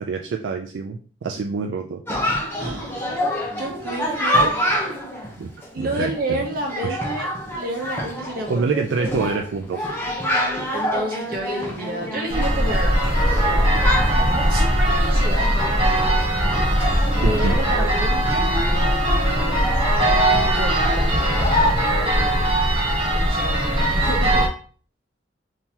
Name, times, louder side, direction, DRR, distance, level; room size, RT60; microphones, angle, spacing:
voice 1, 0.0-2.0 5.4-6.4 6.8-7.1 8.5-9.9 17.2-17.6, right 4 dB, 75° right, 3 dB, 0.3 m, -26 dB
Chatter, 2.1-21.7, equal, 10° left, 0.8 m, -28 dB
voice 2, 2.6-3.1 3.6-4.5 5.7-7.3 7.5-8.6 10.7-13.0 14.5-15.4 17.1-18.5 20.3-22.5 23.1-24.4, right 1 dB, 50° right, 0 dB, 1.0 m, -30 dB
sound 1, 12.3-24.5, right 1 dB, 30° right, 1.4 m, -20 dB
sound 2, 18.1-22.6, left 3 dB, 30° left, 0.3 m, -29 dB
3.7 x 2.8 x 2.8 m, 0.41 s
head